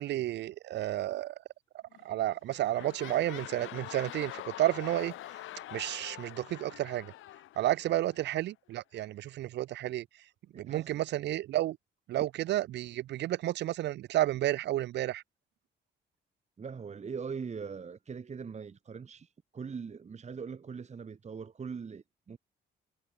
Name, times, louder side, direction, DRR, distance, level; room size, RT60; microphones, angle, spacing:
voice 1, 0.0-1.4 2.0-5.4 5.7-7.1 7.6-10.2 10.5-11.8 12.1-15.2, right 14 dB, 60° right, 0.4 m, -31 dB
sound 1, 1.9-2.2 2.4-8.3 9.0-9.1, left 14 dB, 85° left, 4.3 m, -45 dB
voice 2, 10.5-10.9 16.6-22.4, right 6 dB, 35° right, 1.4 m, -41 dB
cardioid pair, 90°, 20 cm